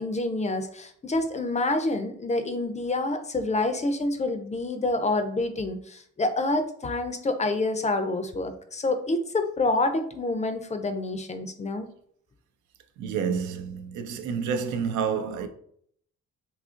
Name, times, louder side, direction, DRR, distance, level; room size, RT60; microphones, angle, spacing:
voice 1, 0.0-11.9, left 2 dB, 25° left, 0.4 m, -27 dB
voice 2, 13.0-15.5, right 6 dB, 75° right, 0.5 m, -29 dB
2.8 x 2.5 x 3.6 m
cardioid pair, 90°, 30 cm